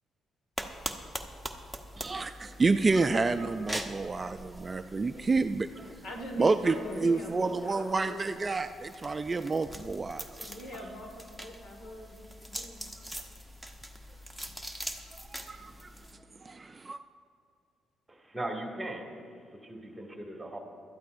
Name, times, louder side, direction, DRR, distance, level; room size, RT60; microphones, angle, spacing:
sound 1, 0.6-16.1, equal, 5° left, 1.0 m, -43 dB
voice 1, 2.0-5.8 6.4-10.2 15.3-15.9 16.4-17.0, right 3 dB, 30° right, 9 dB, 0.4 m, -29 dB
voice 2, 5.8-8.6 10.4-12.9, left 1 dB, 70° left, 2 dB, 1.9 m, -42 dB
voice 3, 18.1-19.1 19.6-20.6, right 1 dB, 10° right, 1 dB, 2.1 m, -38 dB
21.5 x 12.5 x 2.6 m, 2.2 s
cardioid pair, 90°, 0 cm